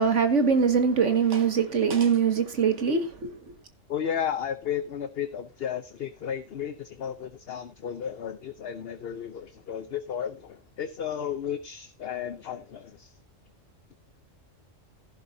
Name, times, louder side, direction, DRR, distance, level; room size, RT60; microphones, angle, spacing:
voice 1, 0.0-3.3, right 6 dB, 70° right, 2.1 m, -23 dB
voice 2, 3.9-13.2, left 8 dB, 55° left, 0.9 m, -33 dB
14.5 x 11.5 x 2.7 m
omnidirectional pair, 1.3 m